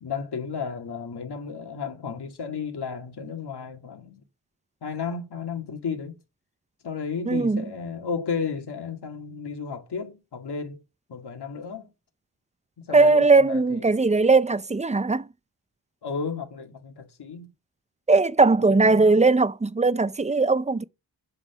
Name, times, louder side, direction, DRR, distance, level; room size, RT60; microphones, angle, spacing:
voice 1, 0.0-4.2 4.8-6.2 6.8-10.8 11.1-11.8 12.8-14.0 16.0-17.5 18.8-19.2, left 5 dB, 80° left, 2.0 m, -33 dB
voice 2, 7.3-7.6 12.9-15.3 18.1-20.8, right 3 dB, 20° right, 0.5 m, -19 dB
7.8 x 5.9 x 5.9 m
wide cardioid pair, 85°, 39 cm